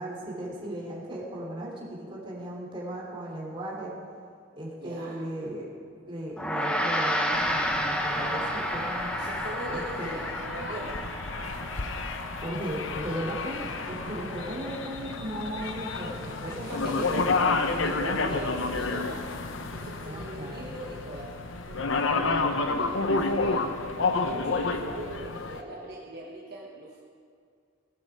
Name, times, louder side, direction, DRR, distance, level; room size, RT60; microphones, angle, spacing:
voice 1, 0.0-3.9 4.5-5.7 6.1-9.1 9.7-10.1 12.4-17.2 20.0-20.7, right 1 dB, 25° right, -3 dB, 3.1 m, -36 dB
voice 2, 4.8-5.2 9.1-11.1 15.6-19.3 19.6-21.3 21.7-23.7 24.1-27.0, right 1 dB, 50° right, -4 dB, 1.5 m, -40 dB
Gong, 6.4-15.9, equal, 5° left, 1.0 m, -32 dB
sound 1, 7.3-25.6, left 3 dB, 70° left, 0.9 m, -31 dB
18.0 x 12.0 x 4.8 m, 2.2 s
head